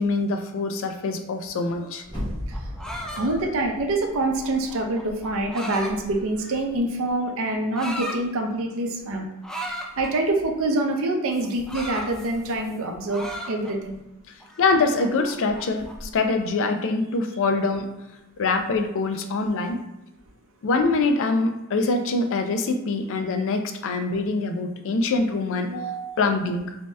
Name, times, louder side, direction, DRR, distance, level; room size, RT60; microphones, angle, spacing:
voice 1, 0.0-2.0 3.2-3.3 14.6-17.9 18.4-19.8 20.6-26.8, left 3 dB, 65° left, 6 dB, 0.4 m, -24 dB
sound 1, 2.0-5.0 5.3-5.4, equal, 20° left, 1.3 m, -36 dB
sound 2, 2.3-6.8 7.5-8.2 9.4-10.1 11.3-12.8 13.1-13.9 14.4-16.1, equal, 5° left, 0.4 m, -36 dB
voice 2, 3.2-9.3 9.6-14.0, right 2 dB, 65° right, 2 dB, 0.5 m, -26 dB
3.1 x 2.7 x 3.3 m, 0.94 s
head